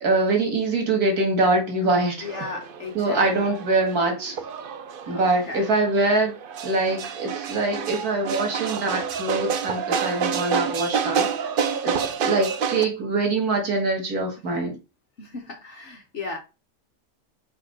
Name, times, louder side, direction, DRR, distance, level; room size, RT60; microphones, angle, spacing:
voice 1, 0.0-2.3 2.9-4.3 5.1-6.3 6.6-11.3 11.8-14.8, right 2 dB, 85° right, 2.3 m, -23 dB
voice 2, 2.2-3.5 5.1-5.7 15.2-16.4, left 3 dB, 55° left, 1.3 m, -36 dB
sound 1, 2.2-12.8, right 7 dB, 60° right, 0.5 m, -29 dB
4.9 x 4.2 x 5.1 m
omnidirectional pair, 1.6 m